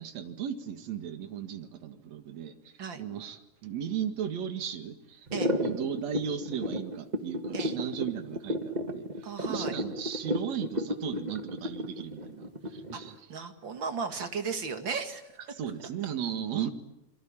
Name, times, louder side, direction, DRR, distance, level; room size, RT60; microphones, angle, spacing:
voice 1, 0.0-13.3 15.5-16.7, right 8 dB, 65° right, 8 dB, 3.0 m, -36 dB
sound 1, 5.3-13.1, equal, 20° right, 1.4 m, -32 dB
voice 2, 9.2-9.7 12.9-15.2, right 5 dB, 45° right, 7 dB, 2.5 m, -35 dB
28.0 x 23.5 x 8.9 m, 0.88 s
omnidirectional pair, 3.3 m